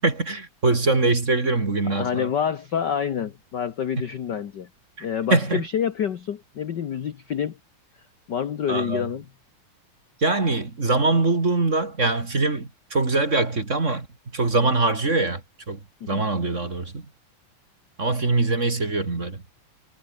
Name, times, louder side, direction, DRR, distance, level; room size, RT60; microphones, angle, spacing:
voice 1, 0.0-2.3 5.0-5.1 5.3-5.6 8.7-9.1 10.2-14.1 14.3-15.8 16.1-17.0 18.0-19.4, right 3 dB, 25° right, 2.5 m, -23 dB
voice 2, 1.8-4.7 5.0-7.6 8.3-9.2 16.0-16.3, left 8 dB, 60° left, 1.1 m, -27 dB
omnidirectional pair, 3.5 m